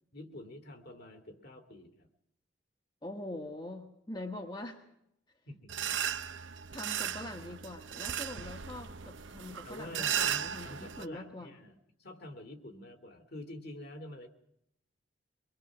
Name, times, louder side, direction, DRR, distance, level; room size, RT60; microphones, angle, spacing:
voice 1, 0.1-2.1 5.5-6.2 9.6-14.3, left 1 dB, 55° left, 6 dB, 2.1 m, -48 dB
voice 2, 3.0-4.9 6.2-11.5, left 1 dB, 25° left, 3 dB, 1.2 m, -44 dB
sound 1, 5.7-11.0, right 9 dB, 80° right, 0.8 m, -36 dB
24.0 x 21.5 x 6.0 m, 0.78 s
head